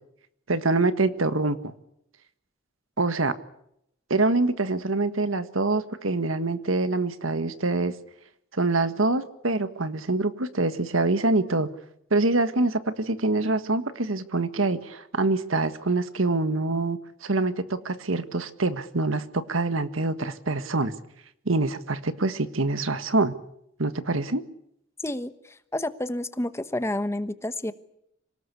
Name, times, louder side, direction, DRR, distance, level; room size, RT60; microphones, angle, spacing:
voice 1, 0.5-1.7 3.0-3.3 4.1-7.9 8.5-11.7 12.1-20.9 21.4-23.3 23.8-24.4, right 2 dB, 85° right, 11 dB, 1.6 m, -25 dB
voice 2, 25.0-27.7, left 1 dB, 15° left, 12 dB, 1.2 m, -30 dB
26.0 x 18.5 x 8.4 m, 0.76 s
head